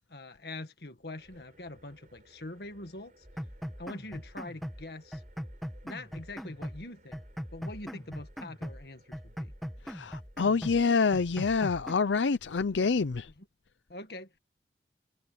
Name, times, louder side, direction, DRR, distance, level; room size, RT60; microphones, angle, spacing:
voice 1, 0.1-3.3 3.8-5.2 5.8-7.2 7.5-9.5 13.4-13.5 13.9-14.4, left 2 dB, 60° left, 1.7 m, -44 dB
sound 1, 1.2-11.5, right 1 dB, 45° right, 5.7 m, -62 dB
sound 2, 3.2-4.9 5.1-6.9 7.1-8.9 9.1-10.9 11.1-11.9, equal, ahead, 1.6 m, -40 dB
voice 2, 9.9-13.3, left 4 dB, 90° left, 0.6 m, -27 dB
head